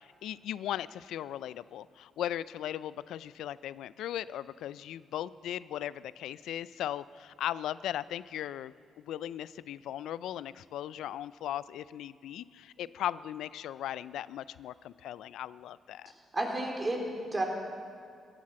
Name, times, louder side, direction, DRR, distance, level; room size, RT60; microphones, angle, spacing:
voice 1, 0.0-16.1, left 11 dB, 80° left, 18 dB, 0.3 m, -38 dB
voice 2, 16.0-17.4, right 1 dB, 25° right, 1 dB, 3.3 m, -32 dB
16.0 x 10.0 x 7.5 m, 2.2 s
cardioid pair, 70°, 0 cm